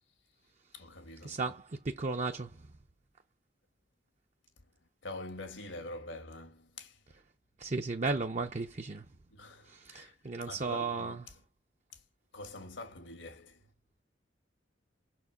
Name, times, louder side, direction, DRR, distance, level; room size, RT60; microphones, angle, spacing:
voice 1, 0.7-1.6 4.6-4.7 5.0-7.0 9.3-10.2 10.5-11.4 11.9-12.0 12.3-13.7, left 2 dB, 85° left, 1.8 m, -46 dB
voice 2, 1.2-2.7 7.6-9.1 9.6-11.2, right 3 dB, 35° right, 0.5 m, -35 dB
6.4 x 4.7 x 4.8 m
head